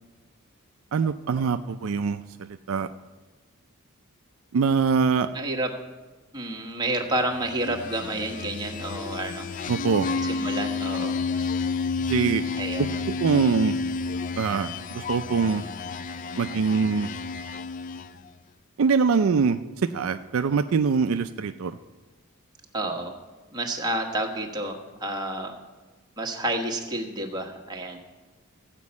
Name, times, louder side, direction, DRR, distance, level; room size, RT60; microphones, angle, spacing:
voice 1, 0.9-2.2 2.7-2.9 4.5-5.3 9.7-10.1 12.1-12.4 13.2-13.8 14.4-15.6 16.4-17.1 18.8-19.6 19.9-21.8, right 5 dB, 65° right, 9 dB, 0.4 m, -23 dB
voice 2, 5.3-5.7 6.3-9.5 10.2-11.2 12.6-13.0 22.7-23.1 23.5-25.5 26.2-28.0, right 1 dB, 20° right, 1 dB, 1.3 m, -30 dB
sound 1, 7.4-18.3, left 4 dB, 40° left, 0.3 m, -31 dB
14.5 x 5.2 x 8.3 m, 1.2 s
head